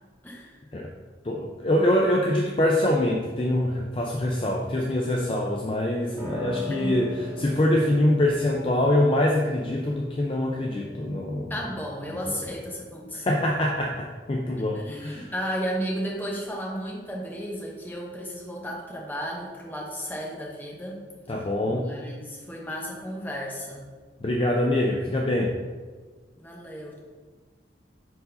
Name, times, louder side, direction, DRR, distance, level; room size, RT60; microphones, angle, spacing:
voice 1, 0.2-0.6 6.8-7.0 11.5-13.4 14.6-21.0 21.6-23.9 26.4-27.0, equal, 10° left, -2 dB, 0.9 m, -34 dB
voice 2, 1.2-7.1 7.4-11.5 13.2-15.3 21.3-21.9 24.2-25.5, left 1 dB, 30° left, -1 dB, 0.4 m, -24 dB
Piano, 6.2-16.1, left 2 dB, 20° right, 1.1 m, -41 dB
4.7 x 4.0 x 5.1 m, 1.4 s
head